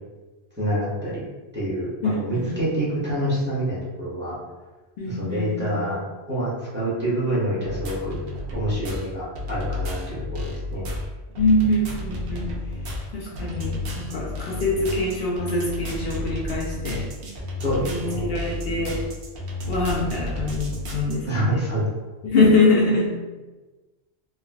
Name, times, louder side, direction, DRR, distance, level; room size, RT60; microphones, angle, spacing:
voice 1, 0.6-1.2 1.5-1.9 2.2-4.4 5.1-6.0 6.3-8.2 8.5-10.4 10.7-10.9 17.6-18.3 21.3-21.8, right 1 dB, 10° right, -10 dB, 0.9 m, -26 dB
voice 2, 2.0-2.6 5.0-5.8 11.3-12.5 13.1-17.1 17.8-19.0 19.7-21.7 22.2-23.2, left 2 dB, 65° left, -4 dB, 0.7 m, -24 dB
sound 1, 7.6-21.2, left 2 dB, 65° right, 0.8 m, -32 dB
3.3 x 2.3 x 2.2 m, 1.2 s
omnidirectional pair, 1.1 m